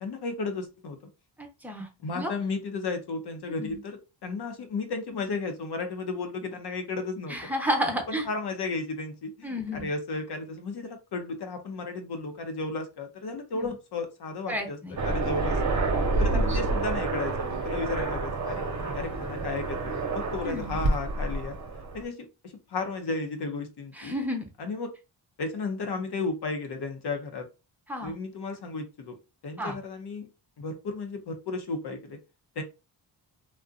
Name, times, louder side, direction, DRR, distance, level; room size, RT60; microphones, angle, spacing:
voice 1, 0.0-1.0 2.0-7.4 7.9-14.8 15.0-15.8 16.2-18.7 18.9-21.6 21.9-24.1 24.6-24.9 25.4-27.5 28.0-29.2 29.4-30.3 30.6-32.2 32.6-32.7, left 3 dB, 60° left, 6 dB, 0.7 m, -34 dB
voice 2, 1.4-1.9 2.1-2.3 3.6-3.8 7.3-8.2 9.4-9.9 13.5-13.7 14.5-15.0 16.3-16.5 20.4-20.8 24.0-24.5 27.9-28.1 29.6-29.7, equal, 5° right, 2 dB, 0.8 m, -31 dB
Aircraft, 15.0-22.0, right 3 dB, 40° right, 0.8 m, -28 dB
2.5 x 2.1 x 2.5 m, 0.29 s
supercardioid pair, 50°, 45 cm